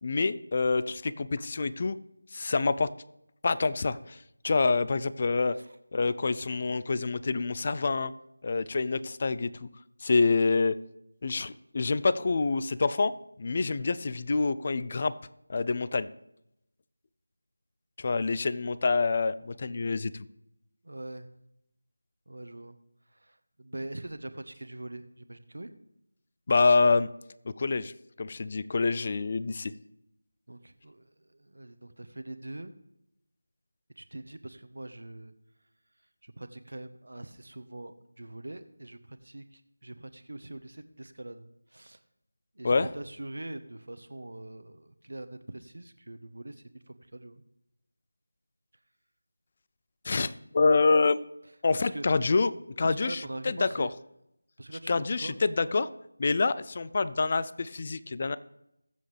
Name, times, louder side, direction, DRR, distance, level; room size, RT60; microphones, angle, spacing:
voice 1, 0.0-2.0 2.3-2.9 3.4-4.2 4.4-5.6 5.9-8.1 8.4-9.7 10.0-10.8 11.2-13.1 13.4-15.1 15.5-16.1 18.0-20.1 26.5-27.1 27.6-27.9 28.2-29.7 42.6-42.9 50.0-51.2 51.6-52.5 52.8-53.9 54.9-55.9 56.2-58.4, left 4 dB, 35° left, 16 dB, 0.5 m, -26 dB
voice 2, 20.8-21.3 22.3-22.8 23.1-25.7 30.5-32.7 34.0-35.3 36.2-42.0 42.5-47.4 51.8-52.0 52.8-53.9 54.6-55.4, right 1 dB, 80° right, 10 dB, 1.2 m, -43 dB
20.5 x 7.8 x 3.5 m, 0.83 s
figure-of-eight pair, 170°, 0 cm